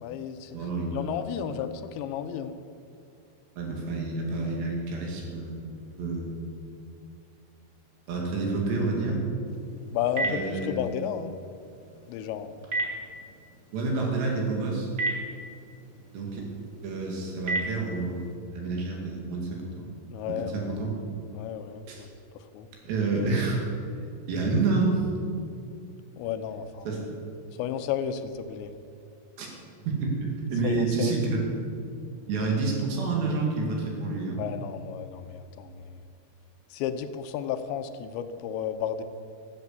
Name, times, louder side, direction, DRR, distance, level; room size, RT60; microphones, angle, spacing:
voice 1, 0.0-0.6 0.9-2.6 9.9-11.4 12.1-12.5 20.1-20.8 21.3-22.1 22.3-22.7 26.1-26.9 27.5-28.7 30.6-31.3 34.4-36.0 36.7-39.0, left 9 dB, 85° left, 9 dB, 2.9 m, -33 dB
voice 2, 0.5-1.1 1.4-1.5 3.6-6.4 8.1-9.2 10.2-10.8 13.7-14.9 16.1-16.4 16.8-18.2 18.5-19.9 20.3-20.9 21.9-22.1 22.9-23.6 24.3-25.0 26.9-27.1 29.4-29.5 29.9-31.4 32.3-34.4, right 3 dB, 70° right, 0 dB, 4.4 m, -28 dB
Telephone, 9.5-18.3, right 2 dB, 25° right, 1.6 m, -36 dB
13.5 x 8.1 x 8.1 m, 2.4 s
omnidirectional pair, 5.2 m